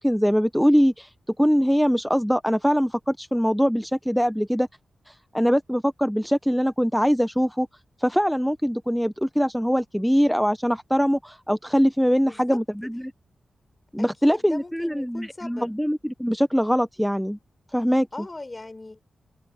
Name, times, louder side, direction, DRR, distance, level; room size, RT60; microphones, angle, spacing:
voice 1, 0.0-4.7 5.1-7.7 8.0-13.1 13.9-17.4 17.7-18.3, equal, ahead, 0.5 m, -22 dB
voice 2, 12.3-12.6 14.0-15.7 18.1-19.0, left 2 dB, 30° left, 6.2 m, -39 dB
cardioid pair, 75°, 0 cm